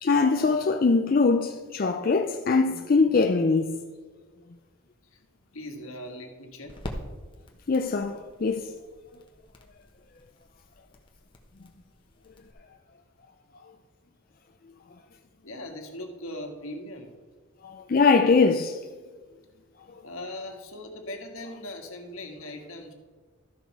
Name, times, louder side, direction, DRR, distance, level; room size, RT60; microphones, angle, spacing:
voice 1, 0.0-3.8 7.7-8.8 17.6-18.8, left 4 dB, 40° left, 0.4 m, -22 dB
sound 1, 4.6-12.5, left 1 dB, 25° left, 1.1 m, -45 dB
voice 2, 5.5-6.8 15.4-17.2 20.0-22.9, left 1 dB, 75° left, 1.7 m, -40 dB
13.5 x 6.2 x 4.6 m
head